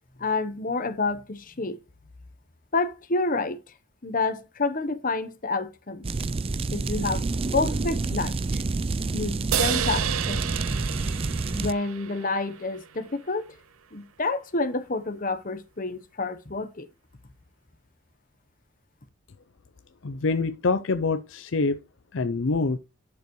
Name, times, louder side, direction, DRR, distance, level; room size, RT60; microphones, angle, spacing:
voice 1, 0.2-1.8 2.7-3.6 4.0-6.1 6.7-7.2 7.5-8.6 9.1-10.5 11.5-13.4 13.9-16.9, left 3 dB, 40° left, 1.0 m, -29 dB
sound 1, 6.0-11.7, right 3 dB, 25° right, 0.4 m, -28 dB
sound 2, 9.5-13.0, right 9 dB, 75° right, 0.6 m, -31 dB
voice 2, 20.0-21.8 22.1-22.8, left 3 dB, 60° left, 0.6 m, -25 dB
11.0 x 6.8 x 3.1 m
head